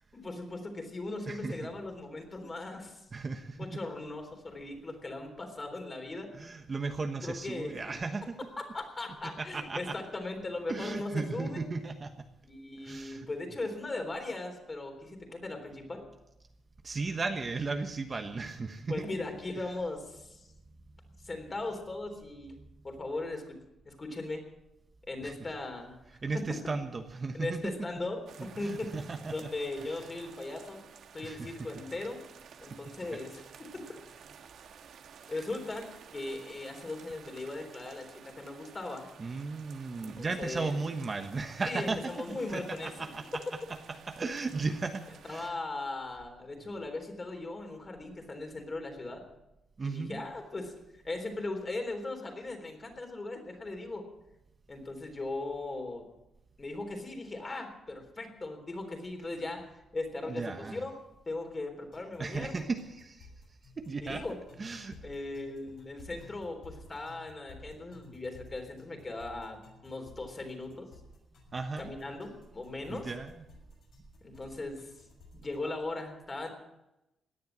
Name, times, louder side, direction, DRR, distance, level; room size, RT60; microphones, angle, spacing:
voice 1, 0.1-3.1 3.6-6.3 7.2-7.8 8.6-11.6 12.4-16.0 18.9-20.5 21.2-22.6 22.8-23.6 23.8-24.5 25.1-26.0 26.3-26.6 27.3-28.3 28.6-28.9 29.3-30.8 31.1-32.2 32.6-33.8 35.3-35.9 36.1-39.1 40.0-40.8 41.7-43.1 45.2-49.2 49.8-54.1 54.7-56.0 56.6-59.6 59.9-60.9 61.3-62.7 64.0-64.4 65.0-70.9 71.8-73.1 74.2-74.9 75.3-76.5, left 2 dB, 25° left, 4 dB, 3.6 m, -38 dB
voice 2, 1.3-1.7 3.1-3.7 6.3-8.3 9.2-9.9 10.7-12.1 12.8-13.3 16.8-19.1 25.2-25.3 26.2-27.7 28.4-29.3 29.9-30.0 31.2-31.5 39.2-42.1 42.5-43.4 44.1-45.6 49.8-50.2 60.3-60.8 62.2-63.3 63.8-64.2 64.6-65.0 71.5-71.9 72.9-73.3, right 4 dB, 30° right, 6 dB, 1.2 m, -35 dB
sound 1, 28.3-45.5, right 7 dB, 70° right, 1.5 m, -53 dB
sound 2, 61.9-75.5, left 2 dB, 75° left, 6.8 m, -54 dB
17.5 x 10.5 x 7.4 m, 0.93 s
cardioid pair, 115°, 0 cm